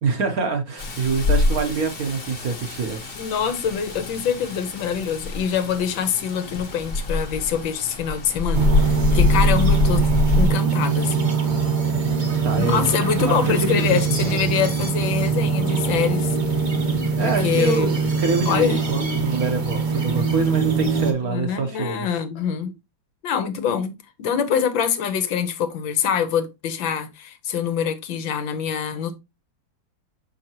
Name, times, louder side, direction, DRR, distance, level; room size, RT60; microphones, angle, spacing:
voice 1, 0.0-3.1 12.4-12.9 13.2-14.4 17.2-22.1, right 4 dB, 55° right, 1.2 m, -25 dB
Rain, 0.8-10.5, left 3 dB, 35° left, 1.3 m, -24 dB
voice 2, 3.2-10.0 10.4-11.3 12.6-16.4 17.2-18.0 18.5-18.8 21.2-22.7 23.2-29.2, left 7 dB, 75° left, 1.6 m, -25 dB
sound 1, 8.5-21.1, right 5 dB, 35° right, 0.8 m, -22 dB
6.5 x 5.5 x 2.9 m
omnidirectional pair, 2.2 m